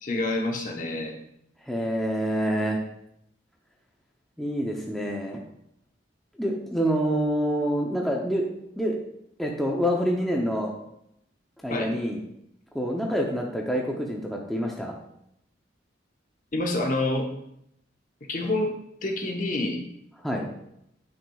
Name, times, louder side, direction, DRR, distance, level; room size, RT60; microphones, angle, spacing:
voice 1, 0.0-1.2 11.7-11.9 16.5-17.3 18.3-18.7 19.0-19.8, left 2 dB, 45° left, 2 dB, 1.0 m, -27 dB
voice 2, 1.6-2.8 4.4-5.4 6.4-8.5 8.8-9.0 9.4-10.7 11.6-12.2 12.7-15.0 20.2-20.5, equal, ahead, -1 dB, 0.6 m, -27 dB
10.0 x 6.0 x 2.3 m, 0.77 s
head